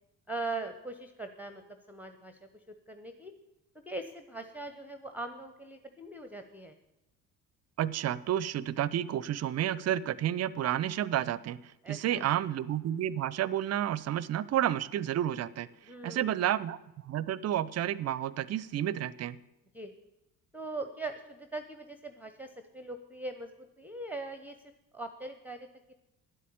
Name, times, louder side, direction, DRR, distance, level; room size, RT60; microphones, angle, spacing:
voice 1, 0.3-3.3 3.9-6.8 11.8-12.2 15.8-16.3 19.7-19.9 20.5-24.6 24.9-25.9, right 2 dB, 5° right, 8 dB, 0.9 m, -41 dB
voice 2, 7.8-15.7 16.0-19.4, right 11 dB, 35° right, 19 dB, 0.6 m, -31 dB
10.5 x 8.4 x 8.8 m, 0.94 s
figure-of-eight pair, 55°, 46 cm